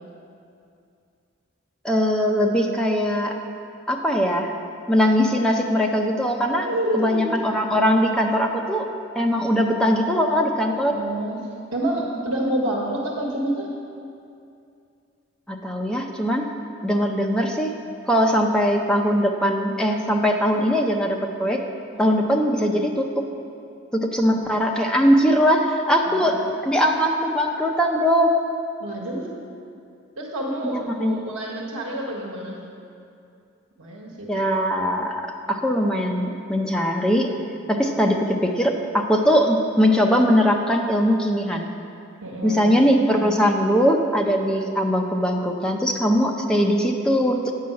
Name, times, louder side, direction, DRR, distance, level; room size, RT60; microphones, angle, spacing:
voice 1, 1.8-3.3 3.9-4.5 4.9-6.7 6.9-8.9 9.1-11.0 15.5-16.4 16.8-17.7 18.1-21.6 22.0-23.3 23.9-26.4 26.6-28.3 30.6-31.4 34.3-37.3 37.7-41.7 42.4-47.5, equal, 5° left, 1 dB, 0.6 m, -21 dB
voice 2, 6.5-7.3 10.7-11.4 11.7-13.7 26.0-26.3 28.8-29.3 30.2-32.6 33.8-34.4 37.9-38.0 42.2-42.7, right 1 dB, 80° right, -2 dB, 1.2 m, -28 dB
9.2 x 5.5 x 7.6 m, 2.5 s
head